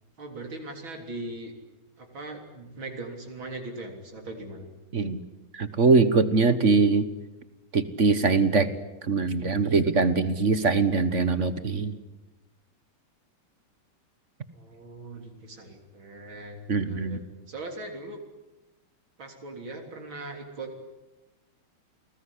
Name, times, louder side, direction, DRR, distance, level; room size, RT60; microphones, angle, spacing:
voice 1, 0.2-1.5 2.0-4.7 14.5-16.6 16.8-17.2 17.5-18.2 19.2-20.7, right 2 dB, 65° right, 3 dB, 4.2 m, -40 dB
voice 2, 5.5-7.1 7.7-8.7 9.0-11.9 16.7-17.2, right 4 dB, 40° right, 13 dB, 1.4 m, -22 dB
30.0 x 20.0 x 10.0 m, 1.1 s
omnidirectional pair, 2.3 m